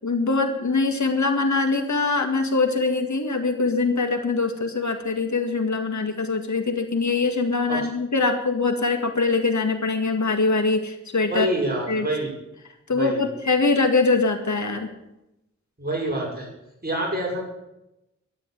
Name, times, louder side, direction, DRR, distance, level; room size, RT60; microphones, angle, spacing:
voice 1, 0.0-11.5 11.9-12.1 12.9-14.9, left 3 dB, 75° left, 5 dB, 2.0 m, -23 dB
voice 2, 11.3-12.3 12.9-13.2 15.8-16.5 16.8-17.4, right 1 dB, 35° right, -1 dB, 6.1 m, -26 dB
13.0 x 10.0 x 8.3 m, 0.88 s
wide cardioid pair, 80°, 29 cm